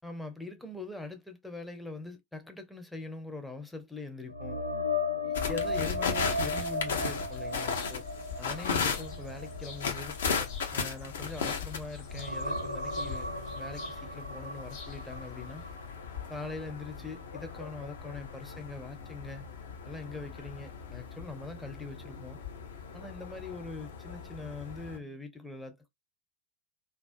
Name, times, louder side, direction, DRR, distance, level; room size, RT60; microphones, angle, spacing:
voice 1, 0.0-4.6 5.2-8.0 8.4-10.2 10.7-15.7 16.3-19.5 19.8-22.4 22.9-25.9, left 3 dB, 5° left, 0.5 m, -42 dB
sound 1, 4.3-11.7 12.0-15.9 16.3-16.5 19.9-20.0, left 2 dB, 90° right, 0.4 m, -36 dB
sound 2, 5.3-25.0, left 5 dB, 65° left, 0.6 m, -37 dB
sound 3, 7.3-15.7, left 5 dB, 45° left, 1.0 m, -53 dB
2.3 x 2.1 x 2.5 m
figure-of-eight pair, 90°, 0 cm